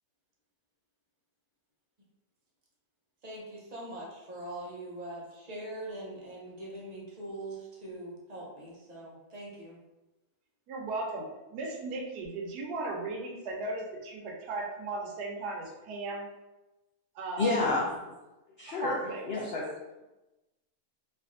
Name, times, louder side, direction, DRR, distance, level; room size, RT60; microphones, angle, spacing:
voice 1, 3.2-9.8, right 1 dB, 55° right, -4 dB, 0.4 m, -42 dB
voice 2, 10.7-11.3 11.5-16.3 17.1-17.8 18.7-19.3, right 2 dB, 85° right, 0 dB, 1.2 m, -36 dB
voice 3, 17.4-17.9 18.6-18.9 19.2-19.7, left 3 dB, 85° left, -4 dB, 0.5 m, -29 dB
3.3 x 2.5 x 2.4 m, 1.0 s
omnidirectional pair, 1.6 m